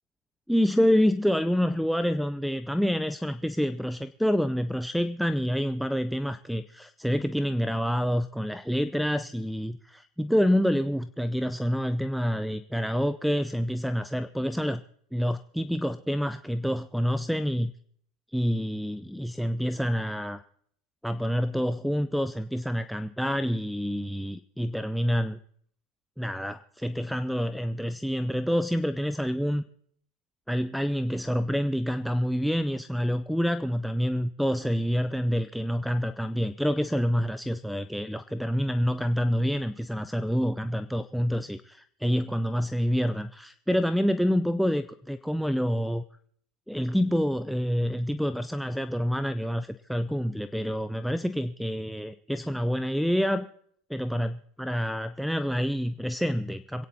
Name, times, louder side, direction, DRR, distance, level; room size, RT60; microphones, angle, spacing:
voice 1, 0.5-14.8 15.1-17.7 18.3-20.4 21.0-25.4 26.2-29.6 30.5-46.0 46.7-53.5 53.9-56.8, equal, ahead, 9 dB, 0.5 m, -27 dB
26.0 x 9.1 x 4.2 m, 0.65 s
supercardioid pair, 115°, 0 cm